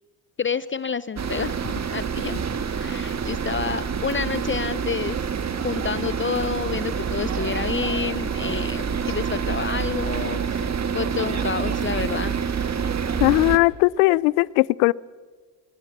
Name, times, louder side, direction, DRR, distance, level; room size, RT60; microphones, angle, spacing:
voice 1, 0.4-2.4 2.8-5.2 5.6-12.3, left 6 dB, 25° left, 18 dB, 0.6 m, -29 dB
sound 1, 1.2-13.6, right 6 dB, 35° right, 1.6 m, -27 dB
voice 2, 13.2-14.9, left 23 dB, 80° left, 25 dB, 0.6 m, -18 dB
28.5 x 21.5 x 6.2 m, 1.4 s
hypercardioid pair, 60°, 46 cm